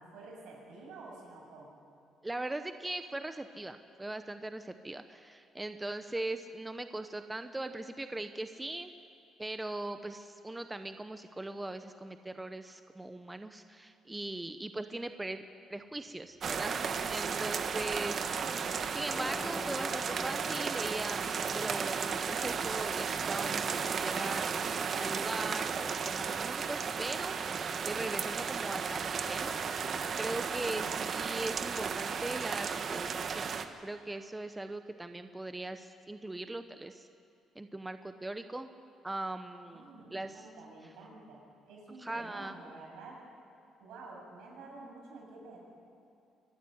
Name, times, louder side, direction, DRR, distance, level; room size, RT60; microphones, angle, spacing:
voice 1, 0.0-1.7 30.7-30.9 39.7-43.2 43.8-45.6, right 3 dB, 85° right, -1 dB, 7.4 m, -50 dB
voice 2, 2.2-8.9 9.4-15.4 15.7-18.5 18.9-24.5 25.0-27.4 27.8-29.6 30.2-33.5 33.8-37.1 37.5-38.7 39.0-39.8 40.1-40.5 42.0-42.5, right 2 dB, 10° right, 8 dB, 0.8 m, -40 dB
sound 1, 16.1-30.1, left 1 dB, 10° left, 1.3 m, -50 dB
sound 2, 16.4-33.6, right 6 dB, 50° right, 1.3 m, -34 dB
24.5 x 12.5 x 9.9 m, 2.6 s
cardioid pair, 105°, 0 cm